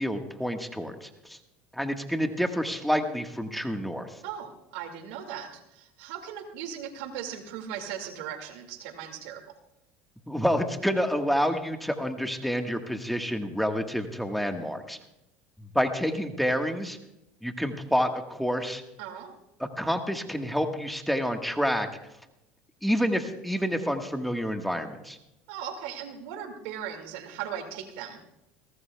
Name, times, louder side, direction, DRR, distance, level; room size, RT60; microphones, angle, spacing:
voice 1, 0.0-1.4 1.7-4.2 10.3-15.0 15.6-17.0 17.4-18.8 19.6-21.9 22.8-25.2, equal, ahead, 5 dB, 1.5 m, -28 dB
voice 2, 4.2-9.4 19.0-19.4 25.5-28.2, right 9 dB, 75° right, 6 dB, 2.2 m, -38 dB
22.0 x 18.0 x 2.3 m, 0.89 s
supercardioid pair, 100°, 6 cm